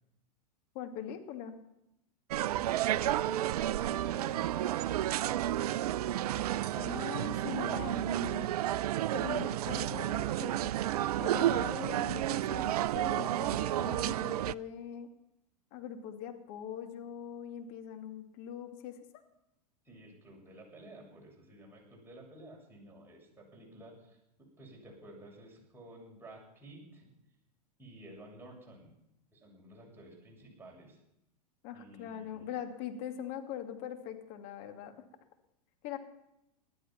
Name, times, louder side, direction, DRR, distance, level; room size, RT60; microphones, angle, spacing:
voice 1, 0.7-1.6 6.7-8.5 9.1-10.8 11.2-15.1 15.7-19.2 31.6-34.9 35.8-36.0, left 9 dB, 50° left, 6 dB, 2.4 m, -42 dB
voice 2, 2.3-5.4 19.8-24.2 24.6-27.1 27.8-28.9 29.3-31.0 31.7-32.6, right 1 dB, 10° right, -2 dB, 7.2 m, -52 dB
sound 1, 2.3-14.5, right 13 dB, 65° right, 0.5 m, -31 dB
19.0 x 12.0 x 5.9 m, 0.84 s
hypercardioid pair, 100°, 21 cm